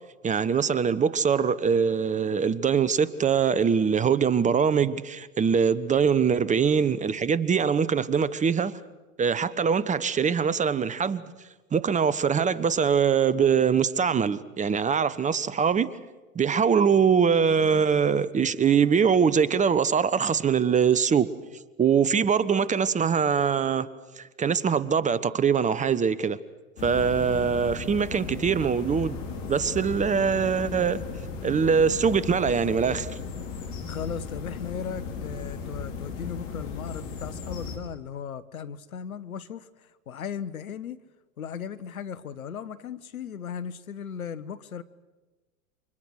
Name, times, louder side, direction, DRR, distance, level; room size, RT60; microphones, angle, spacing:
voice 1, 0.2-8.7 9.2-11.2 11.7-15.9 16.3-21.3 21.8-23.9 24.4-26.4 26.8-29.2 29.5-31.0 31.4-33.1, right 6 dB, 15° right, 1.0 m, -23 dB
sound 1, 26.8-37.8, left 5 dB, 60° left, 4.9 m, -36 dB
voice 2, 33.9-41.0 41.4-44.8, left 7 dB, 80° left, 1.4 m, -37 dB
29.5 x 25.5 x 6.5 m
hypercardioid pair, 95°, 42 cm